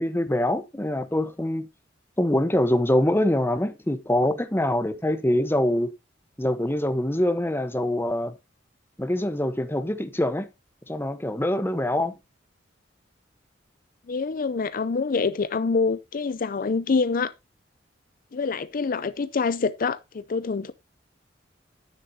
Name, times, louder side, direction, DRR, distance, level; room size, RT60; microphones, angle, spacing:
voice 1, 0.0-1.7 2.2-5.9 6.4-8.3 9.0-10.5 10.9-12.1, left 1 dB, 15° left, 0.9 m, -24 dB
voice 2, 14.1-17.3 18.3-20.7, left 4 dB, 50° left, 0.5 m, -26 dB
11.0 x 9.8 x 2.7 m
head